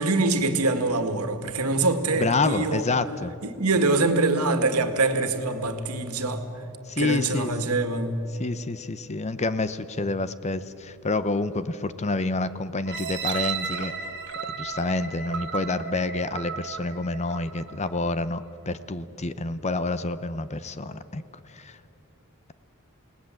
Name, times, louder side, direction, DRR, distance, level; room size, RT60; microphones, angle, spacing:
voice 1, 0.0-2.9 3.4-6.6 7.0-8.2, right 3 dB, 90° right, 8 dB, 1.9 m, -24 dB
voice 2, 2.1-3.3 6.9-7.8 8.4-13.9 14.6-21.2 21.5-21.8, left 3 dB, 30° left, 13 dB, 0.7 m, -28 dB
sound 1, 12.9-17.8 18.4-18.5, right 6 dB, 55° right, 1.9 m, -34 dB
29.0 x 18.5 x 7.7 m, 3.0 s
head